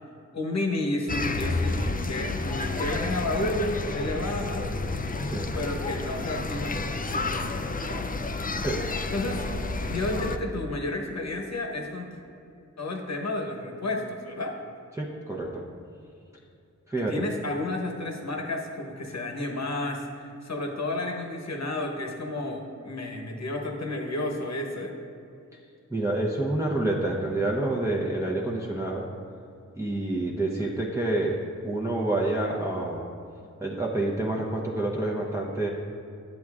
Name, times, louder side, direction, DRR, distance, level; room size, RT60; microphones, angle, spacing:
voice 1, 0.3-4.6 5.5-8.2 9.1-9.5 9.9-12.2 12.8-14.6 17.1-24.9, left 2 dB, 60° left, 2 dB, 1.0 m, -31 dB
sound 1, 1.1-10.4, left 3 dB, 30° left, 0.4 m, -30 dB
voice 2, 14.9-15.6 16.9-17.2 25.9-29.1 29.8-33.0 33.6-35.7, right 2 dB, 10° right, -4 dB, 0.7 m, -28 dB
10.5 x 7.5 x 2.4 m, 2.6 s
wide cardioid pair, 50°, 30 cm